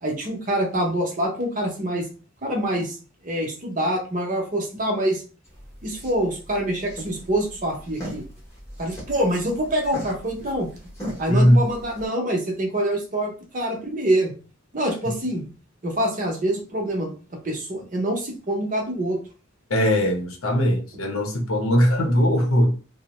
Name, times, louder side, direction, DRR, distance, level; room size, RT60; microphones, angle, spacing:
voice 1, 0.0-2.1 2.4-3.0 3.2-5.2 5.8-8.3 8.8-10.7 11.2-14.3 14.7-15.4 15.8-17.1 17.4-19.2, right 1 dB, 35° right, 0.7 m, -25 dB
sound 1, 5.4-12.0, equal, 15° left, 0.8 m, -39 dB
voice 2, 11.3-11.6 19.7-22.7, equal, 75° left, 0.7 m, -19 dB
2.6 x 2.0 x 2.9 m
head